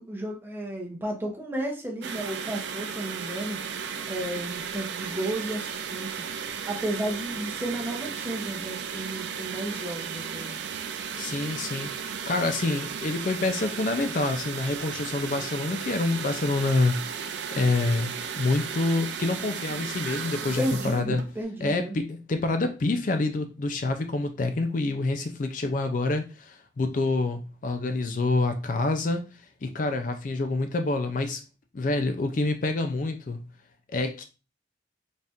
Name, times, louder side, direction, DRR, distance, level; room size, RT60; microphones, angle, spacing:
voice 1, 0.0-3.6 4.1-6.3 6.7-10.6 20.6-22.0, right 1 dB, 10° right, -1 dB, 0.8 m, -33 dB
sound 1, 2.0-21.4, right 7 dB, 70° right, 0.4 m, -35 dB
voice 2, 11.2-11.9 12.3-21.2 21.6-29.3 29.6-31.4 31.7-33.5 33.9-34.2, left 2 dB, 45° left, 7 dB, 0.4 m, -27 dB
4.1 x 2.4 x 3.4 m, 0.31 s
head